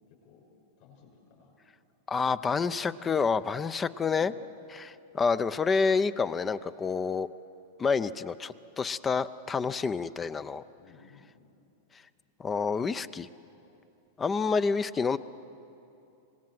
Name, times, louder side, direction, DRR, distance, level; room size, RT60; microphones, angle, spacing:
voice 1, 0.1-0.5 0.8-1.5 4.1-4.4 10.8-11.5, left 6 dB, 55° left, -3 dB, 6.6 m, -57 dB
voice 2, 2.1-4.3 4.7-7.3 7.8-10.6 12.4-13.3 14.2-15.2, left 5 dB, 20° left, 14 dB, 0.6 m, -28 dB
25.5 x 19.0 x 7.7 m, 2.8 s
hypercardioid pair, 105°, 0 cm